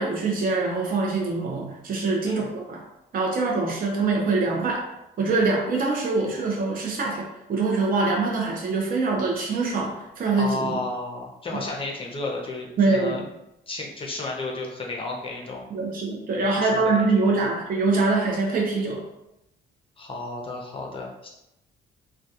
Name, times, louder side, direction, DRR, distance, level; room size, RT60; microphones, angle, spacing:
voice 1, 0.0-2.8 3.1-4.8 5.2-10.8 11.5-11.6 12.8-13.3 15.7-19.0, right 3 dB, 45° right, -1 dB, 0.6 m, -24 dB
voice 2, 10.4-13.2 13.7-15.6 16.4-17.0 20.0-21.3, left 2 dB, 25° left, -1 dB, 0.6 m, -32 dB
2.2 x 2.2 x 2.7 m, 0.87 s
cardioid pair, 90°, 20 cm